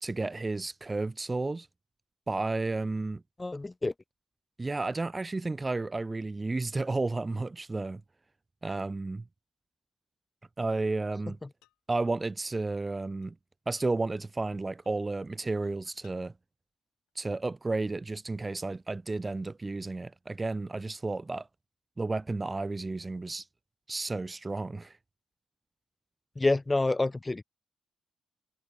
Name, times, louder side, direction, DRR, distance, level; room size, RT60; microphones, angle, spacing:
voice 1, 0.0-1.7 2.3-3.2 4.6-8.0 8.6-9.2 10.6-11.4 11.9-13.3 13.7-16.3 17.2-21.5 22.0-23.5 23.9-24.9, right 3 dB, 25° right, 0.5 m, -32 dB
voice 2, 3.4-3.9 26.4-27.4, left 2 dB, 20° left, 1.2 m, -27 dB
sound 1, 11.6-11.8 12.8-12.9 13.2-13.3 13.8-13.9 14.8-15.1 15.6-16.2 17.1-17.2, left 19 dB, 85° left, 8.0 m, -65 dB
hypercardioid pair, 50°, 0 cm